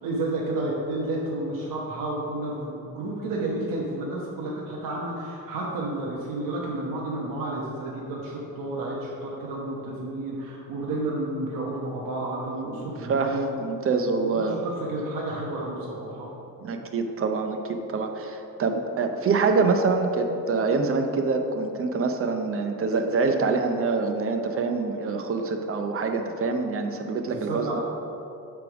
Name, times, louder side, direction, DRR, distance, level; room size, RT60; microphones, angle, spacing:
voice 1, 0.0-13.6 14.2-16.3 27.5-27.8, right 2 dB, 75° right, -4 dB, 1.1 m, -31 dB
voice 2, 13.0-14.6 16.6-27.8, right 4 dB, 40° right, 5 dB, 0.6 m, -25 dB
8.2 x 3.5 x 6.0 m, 3.0 s
cardioid pair, 130°, 33 cm